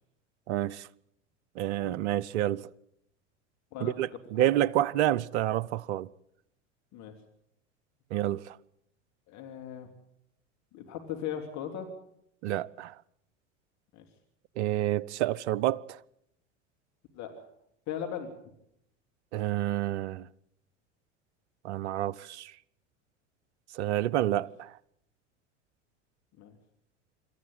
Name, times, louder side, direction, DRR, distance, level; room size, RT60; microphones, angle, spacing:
voice 1, 0.5-0.9 1.6-2.6 3.8-6.1 8.1-8.6 12.4-12.9 14.6-16.0 19.3-20.3 21.6-22.5 23.7-24.7, right 13 dB, 65° right, 0.8 m, -29 dB
voice 2, 9.3-9.9 10.7-11.9 13.9-14.0 17.1-17.5 17.9-18.3 24.3-24.4 26.4-26.5, left 9 dB, 50° left, 3.2 m, -38 dB
26.5 x 13.5 x 9.1 m
hypercardioid pair, 80°, 36 cm